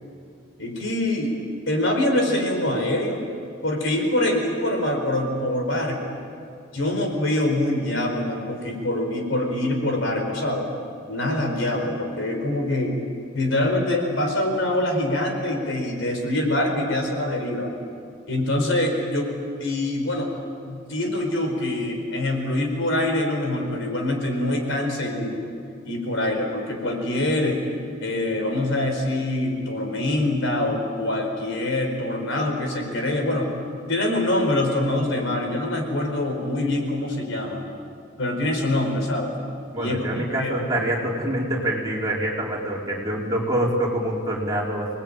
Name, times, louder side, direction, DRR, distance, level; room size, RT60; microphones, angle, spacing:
voice 1, 0.6-1.3 1.7-3.3 3.6-6.2 6.7-10.7 11.1-13.0 13.3-17.7 18.3-19.3 19.6-20.3 20.6-25.4 25.8-27.6 28.0-33.5 33.9-37.7 38.2-39.3 39.8-40.6, left 1 dB, 70° left, 3 dB, 4.7 m, -24 dB
voice 2, 39.7-45.0, right 1 dB, 20° right, -4 dB, 4.6 m, -25 dB
27.0 x 20.0 x 9.0 m, 2.4 s
head